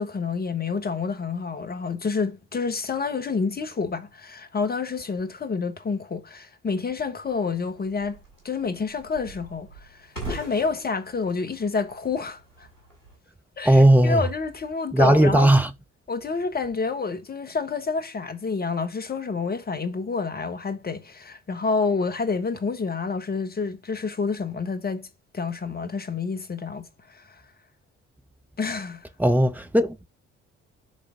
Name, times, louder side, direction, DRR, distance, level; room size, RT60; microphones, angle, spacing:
voice 1, 0.0-8.2 8.4-12.7 13.6-15.5 16.1-25.1 25.3-27.4 28.6-29.0, left 4 dB, 25° left, 1.2 m, -28 dB
sound 1, 7.2-13.2, right 1 dB, 85° left, 2.0 m, -42 dB
voice 2, 13.6-14.2 14.9-15.7 29.2-30.1, right 1 dB, 5° right, 0.8 m, -17 dB
8.2 x 3.4 x 3.6 m
figure-of-eight pair, 45°, 37 cm